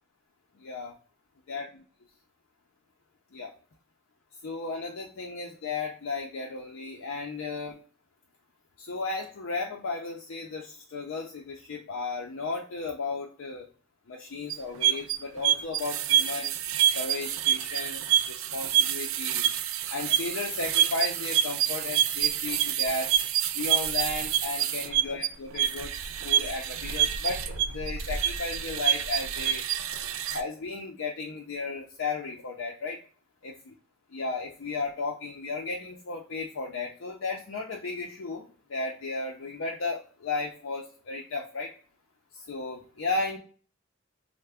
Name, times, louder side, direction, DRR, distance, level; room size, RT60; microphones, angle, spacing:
voice 1, 0.6-0.9 1.5-1.7 3.3-3.5 4.4-7.8 8.8-13.7 14.1-16.5 16.9-19.5 19.9-23.1 23.5-29.6 30.3-33.0 33.4-33.7 34.1-41.7 42.3-43.4, left 3 dB, 75° left, 1 dB, 0.5 m, -34 dB
sound 1, 14.5-30.4, right 11 dB, 85° right, 0.4 m, -27 dB
3.3 x 2.1 x 3.4 m, 0.42 s
head